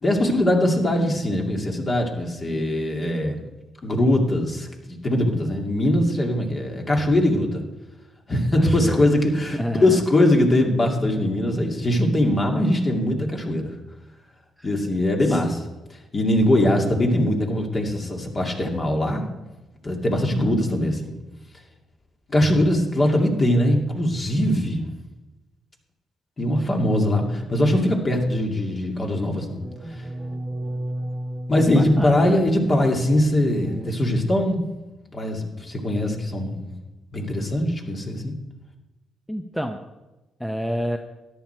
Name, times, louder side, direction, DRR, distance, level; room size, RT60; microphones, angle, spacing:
voice 1, 0.0-3.4 3.8-7.6 8.3-13.7 14.6-15.6 16.1-19.3 19.8-21.1 22.3-24.9 26.4-29.6 31.5-34.6 35.1-36.7 37.1-38.3, left 1 dB, 35° left, 1 dB, 2.4 m, -21 dB
voice 2, 8.6-9.1 9.5-10.0 14.6-14.7 15.2-15.5 31.6-32.4 39.3-39.8 40.4-41.0, equal, ahead, 5 dB, 0.8 m, -29 dB
sound 1, 27.6-28.4 29.3-33.0 33.5-33.9, right 1 dB, 30° right, 1.3 m, -34 dB
13.5 x 10.5 x 4.5 m, 1.1 s
cardioid pair, 90°, 0 cm